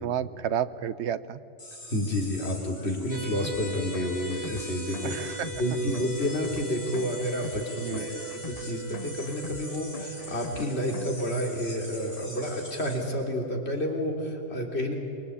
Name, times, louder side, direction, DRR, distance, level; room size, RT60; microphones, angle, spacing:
voice 1, 0.0-1.4 5.0-5.5 7.8-8.1, right 9 dB, 70° right, 14 dB, 1.1 m, -31 dB
sound 1, 1.6-13.1, left 1 dB, 75° left, 6.3 m, -44 dB
voice 2, 1.8-14.9, left 1 dB, 60° left, 1 dB, 3.6 m, -30 dB
sound 2, 3.1-14.3, right 7 dB, 20° right, 1.9 m, -42 dB
sound 3, 3.4-11.4, left 5 dB, 40° left, 0.7 m, -43 dB
26.5 x 22.5 x 8.6 m, 2.7 s
omnidirectional pair, 1.2 m